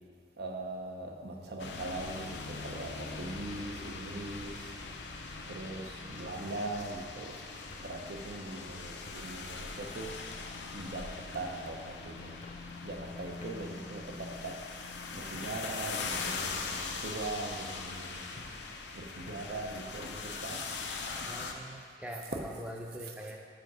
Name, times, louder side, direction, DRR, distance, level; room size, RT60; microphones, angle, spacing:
voice 1, 0.4-4.8 5.5-10.3 10.7-12.5 12.8-14.7 15.1-18.4 18.9-21.3, right 2 dB, 60° right, 2 dB, 0.7 m, -41 dB
sound 1, 1.6-21.5, left 4 dB, 75° left, 0.6 m, -41 dB
sound 2, 5.0-5.6 6.6-6.7 7.7-7.9 9.1-9.3 10.3-10.5 11.3-11.5 12.4-12.6 13.4-13.6 14.3-14.8 15.6-15.7 16.4-16.6 17.5-17.7 18.4-18.6 19.3-19.5 20.5-20.7 21.4-21.6, left 2 dB, 35° left, 0.7 m, -53 dB
voice 2, 21.2-23.4, equal, 5° right, 0 dB, 0.6 m, -43 dB
5.5 x 5.1 x 6.1 m, 2.3 s
head